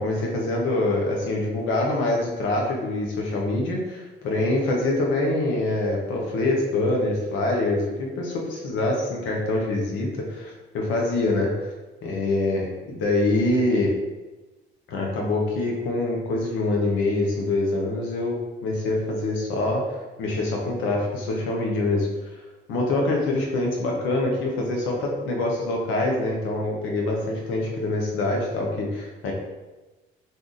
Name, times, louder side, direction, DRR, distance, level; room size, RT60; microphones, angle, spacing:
voice 1, 0.0-8.3 8.6-11.5 12.0-13.9 14.9-18.4 18.6-22.3 22.7-29.3, left 2 dB, 85° left, -1 dB, 0.8 m, -25 dB
2.7 x 2.4 x 3.7 m, 1.2 s
cardioid pair, 75°, 20 cm